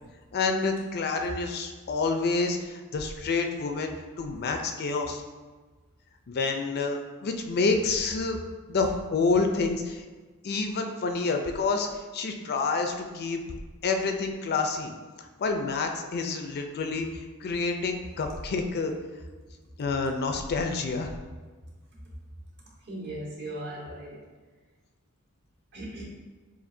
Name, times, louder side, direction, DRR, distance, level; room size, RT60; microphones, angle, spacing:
voice 1, 0.3-3.9 4.2-5.2 6.3-8.4 8.7-10.0 10.4-11.9 12.1-13.4 13.8-14.9 15.2-17.1 17.4-18.9 19.8-21.1, left 4 dB, 45° left, 5 dB, 0.4 m, -28 dB
voice 2, 22.9-24.2 25.7-26.0, right 1 dB, 50° right, -4 dB, 1.2 m, -37 dB
7.0 x 2.6 x 2.6 m, 1.3 s
head